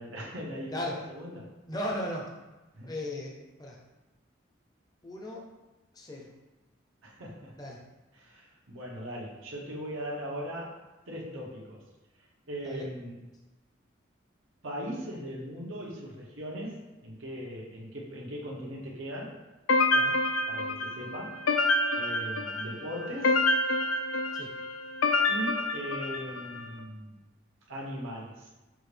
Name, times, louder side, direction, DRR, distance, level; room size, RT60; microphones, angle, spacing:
voice 1, 0.0-1.5 2.8-2.9 7.0-7.5 8.1-10.8 11.1-11.8 12.5-13.2 14.6-19.4 20.5-21.4 21.9-23.4 25.3-27.2 27.7-28.5, equal, 90° right, -3 dB, 1.0 m, -39 dB
voice 2, 0.7-1.0 1.7-2.3 2.8-3.8 5.0-5.4 5.9-6.3 7.6-7.8 12.6-12.9 19.9-20.2 24.3-24.5, left 1 dB, 20° left, -1 dB, 0.5 m, -36 dB
sound 1, 19.7-26.6, left 2 dB, 90° left, 0.4 m, -27 dB
5.9 x 2.4 x 3.3 m, 1.1 s
head